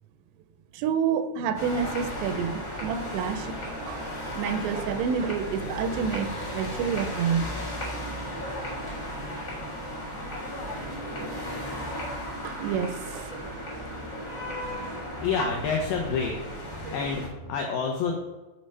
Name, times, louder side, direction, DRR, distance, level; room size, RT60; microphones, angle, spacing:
voice 1, 0.7-4.0 4.4-7.5 12.4-13.6, right 7 dB, 85° right, 10 dB, 2.7 m, -29 dB
sound 1, 1.5-17.3, equal, 45° left, 0.9 m, -35 dB
sound 2, 2.6-7.3, equal, 35° right, 0.4 m, -51 dB
voice 2, 15.2-18.2, left 5 dB, 90° left, 2 dB, 2.0 m, -29 dB
7.4 x 3.3 x 5.4 m, 1.1 s
omnidirectional pair, 5.0 m